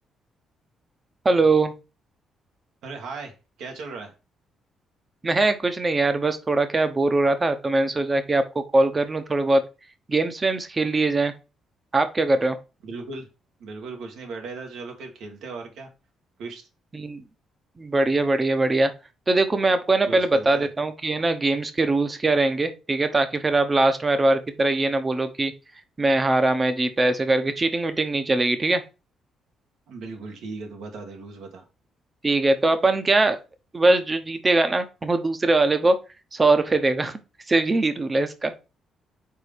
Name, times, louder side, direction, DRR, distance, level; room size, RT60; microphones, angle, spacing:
voice 1, 1.2-1.7 5.2-9.6 10.1-11.3 11.9-12.6 16.9-17.2 17.8-18.9 19.3-25.5 26.0-28.8 32.2-33.4 33.7-36.0 36.3-37.2 37.5-38.5, right 2 dB, 25° right, 9 dB, 1.0 m, -21 dB
voice 2, 2.8-3.3 3.6-4.1 12.8-13.3 13.6-15.9 16.4-16.7 20.1-20.7 29.9-31.6, right 3 dB, 80° right, 2 dB, 1.7 m, -37 dB
4.7 x 3.8 x 5.2 m, 0.29 s
cardioid pair, 90°, 0 cm